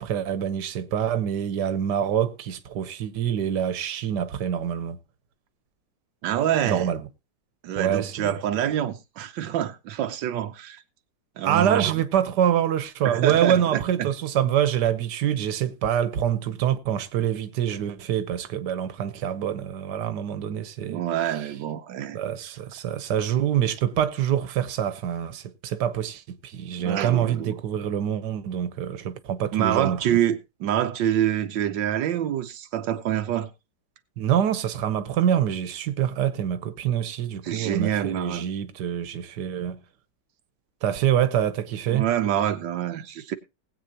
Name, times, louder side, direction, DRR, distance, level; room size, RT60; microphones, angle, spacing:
voice 1, 0.0-5.0 6.6-7.1 7.7-8.4 11.4-21.5 22.1-30.2 34.2-39.8 40.8-42.0, right 10 dB, 70° right, 1.6 m, -25 dB
voice 2, 6.2-6.9 7.6-10.8 11.4-11.9 13.0-14.1 20.8-22.2 22.4-22.5 26.8-27.5 29.5-33.5 37.4-38.4 41.9-43.4, right 11 dB, 90° right, 1.5 m, -26 dB
19.5 x 8.3 x 2.8 m
omnidirectional pair, 1.9 m